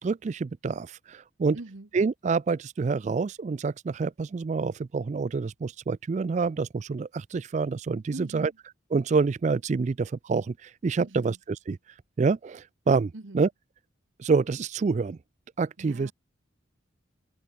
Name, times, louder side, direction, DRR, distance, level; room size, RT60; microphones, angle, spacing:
voice 1, 0.0-1.6 1.9-8.5 8.9-11.8 12.2-13.5 14.2-15.2 15.6-16.1, right 4 dB, 40° right, 0.3 m, -27 dB
voice 2, 1.5-1.9 8.1-8.5 11.0-11.4 13.1-13.4 15.8-16.1, right 2 dB, 85° right, 1.2 m, -41 dB
open air
head